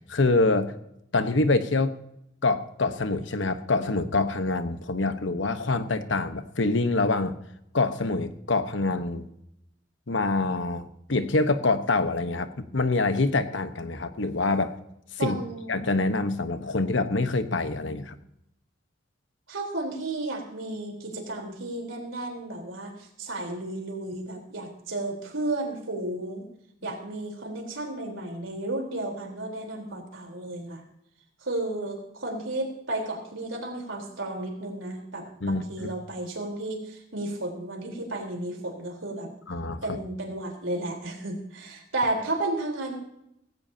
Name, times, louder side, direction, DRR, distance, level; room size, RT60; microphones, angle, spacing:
voice 1, 0.1-0.7 1.1-1.9 2.4-7.3 7.7-9.3 10.1-14.8 15.2-15.4 15.7-18.2 35.4-35.9 39.5-40.0, left 3 dB, 75° left, 10 dB, 1.1 m, -25 dB
voice 2, 15.2-15.8 19.5-26.5 26.8-30.8 31.4-39.3 39.8-43.0, right 2 dB, 85° right, 1 dB, 3.9 m, -33 dB
18.0 x 16.5 x 2.8 m, 0.78 s
head